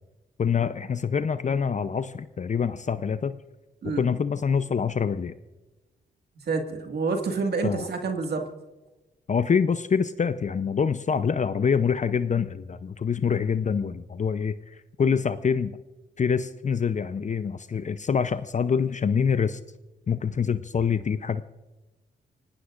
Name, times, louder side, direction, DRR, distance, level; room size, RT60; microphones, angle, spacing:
voice 1, 0.4-3.4 3.8-5.3 7.6-7.9 9.3-15.8 16.2-19.6 20.1-21.4, left 6 dB, 40° left, 13 dB, 0.6 m, -25 dB
voice 2, 6.4-8.4 15.0-15.1, right 4 dB, 65° right, 4 dB, 2.0 m, -28 dB
27.5 x 18.0 x 2.5 m, 1.1 s
supercardioid pair, 55°, 18 cm